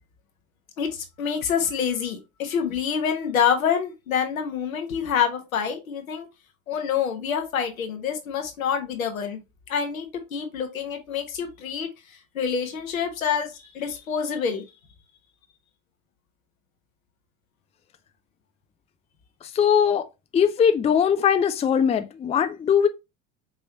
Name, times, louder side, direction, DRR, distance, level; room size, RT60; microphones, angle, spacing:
voice 1, 0.8-6.3 6.7-9.4 9.7-11.9 12.3-14.6, left 7 dB, 80° left, 1.1 m, -27 dB
voice 2, 19.4-20.1 20.3-22.9, left 8 dB, 15° left, 0.4 m, -20 dB
5.3 x 3.1 x 2.8 m
figure-of-eight pair, 70°, 40 cm